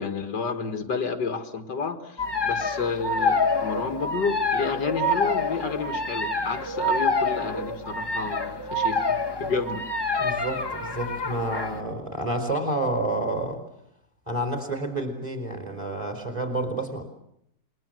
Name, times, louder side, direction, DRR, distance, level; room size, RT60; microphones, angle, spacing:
voice 1, 0.0-9.8, left 5 dB, 85° left, 7 dB, 2.5 m, -30 dB
sound 1, 2.2-11.8, left 2 dB, 15° left, 1.4 m, -27 dB
voice 2, 10.2-13.6 14.3-17.0, right 1 dB, 20° right, 6 dB, 3.9 m, -29 dB
28.5 x 21.5 x 7.7 m, 0.75 s
omnidirectional pair, 1.8 m